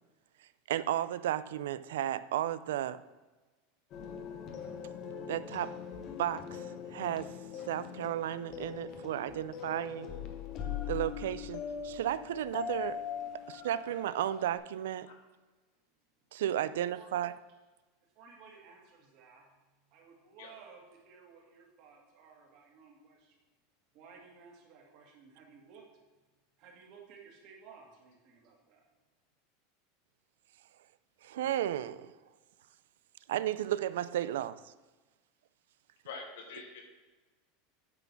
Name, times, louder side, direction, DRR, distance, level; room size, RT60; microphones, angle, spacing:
voice 1, 0.7-3.0 5.3-5.8 6.2-6.6 6.9-7.3 7.7-10.1 10.9-13.0 13.5-15.1 16.3-17.3 31.2-32.1 33.3-34.7, right 12 dB, 90° right, 15 dB, 0.4 m, -33 dB
sound 1, 3.9-14.6, left 8 dB, 30° left, 0.9 m, -41 dB
voice 2, 16.6-17.1 18.1-19.5 19.9-23.4 23.9-25.8 26.6-28.8, right 5 dB, 40° right, 0 dB, 2.0 m, -56 dB
voice 3, 36.0-36.9, left 4 dB, 75° left, 0 dB, 2.6 m, -45 dB
8.9 x 6.2 x 5.9 m, 1.2 s
supercardioid pair, 175°, 0 cm